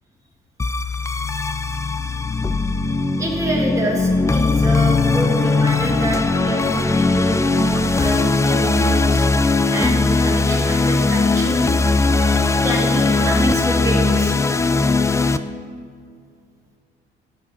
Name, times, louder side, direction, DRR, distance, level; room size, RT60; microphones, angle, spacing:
sound 1, 0.6-15.4, left 3 dB, 15° left, 0.4 m, -19 dB
voice 1, 3.2-9.3 9.7-11.6 12.1-14.4, right 1 dB, 15° right, -2 dB, 2.1 m, -27 dB
9.9 x 6.2 x 5.6 m, 2.2 s
cardioid pair, 100°, 21 cm